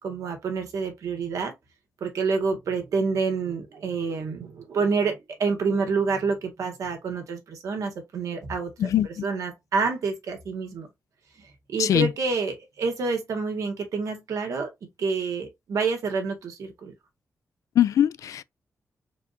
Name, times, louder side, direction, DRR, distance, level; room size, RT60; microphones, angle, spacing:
voice 1, 0.0-1.5 2.0-8.9 9.2-10.9 11.4-16.9, right 4 dB, 80° right, 1.7 m, -28 dB
voice 2, 8.8-9.2 11.8-12.1 17.8-18.4, left 10 dB, 80° left, 0.4 m, -22 dB
4.4 x 4.1 x 2.7 m
wide cardioid pair, 150°, 5 cm